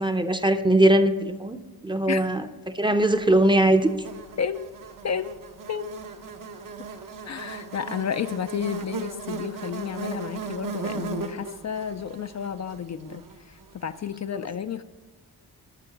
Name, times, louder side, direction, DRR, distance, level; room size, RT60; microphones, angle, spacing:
voice 1, 0.0-1.6 1.8-2.5 2.7-3.9 14.3-14.4, right 1 dB, 10° right, 8 dB, 0.6 m, -20 dB
Buzz, 3.3-13.7, right 4 dB, 55° right, 1.0 m, -37 dB
voice 2, 4.4-4.7 5.0-5.4 5.7-6.0 7.3-14.8, left 7 dB, 45° left, 9 dB, 0.4 m, -31 dB
13.0 x 5.7 x 5.7 m, 1.3 s
cardioid pair, 80°, 38 cm